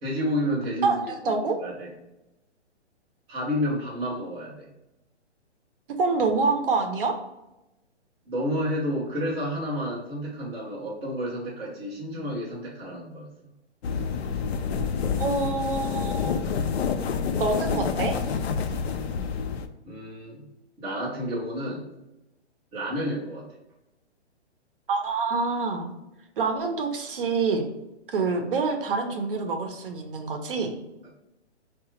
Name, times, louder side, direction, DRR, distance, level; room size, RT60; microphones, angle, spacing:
voice 1, 0.0-1.9 3.3-4.7 8.3-13.5 19.8-20.4 20.8-21.9 22.7-23.4, equal, 5° right, -10 dB, 0.4 m, -30 dB
voice 2, 0.8-1.6 6.0-7.2 12.1-12.2 15.2-16.4 17.4-18.2 24.9-25.9 26.4-27.7 28.1-30.7, right 4 dB, 50° right, 4 dB, 0.7 m, -26 dB
sound 1, 13.8-19.7, left 6 dB, 65° left, 0.5 m, -28 dB
4.7 x 2.4 x 2.9 m, 0.94 s
hypercardioid pair, 150°, 35 cm